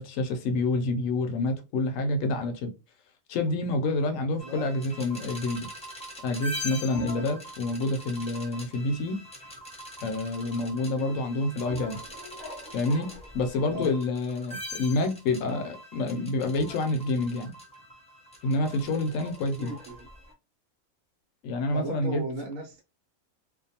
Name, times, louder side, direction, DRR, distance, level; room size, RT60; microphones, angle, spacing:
voice 1, 0.0-2.7 3.3-5.7 6.2-9.2 10.0-12.0 12.7-13.1 13.3-17.5 18.4-19.7 21.4-22.2, left 2 dB, 75° left, 0.9 m, -28 dB
voice 2, 4.3-4.7 7.1-7.4 10.9-11.2 13.7-14.0 19.6-20.0 21.7-22.8, right 2 dB, 70° right, 1.1 m, -36 dB
sound 1, 4.4-20.3, left 1 dB, 5° left, 0.5 m, -42 dB
2.5 x 2.2 x 2.7 m
omnidirectional pair, 1.4 m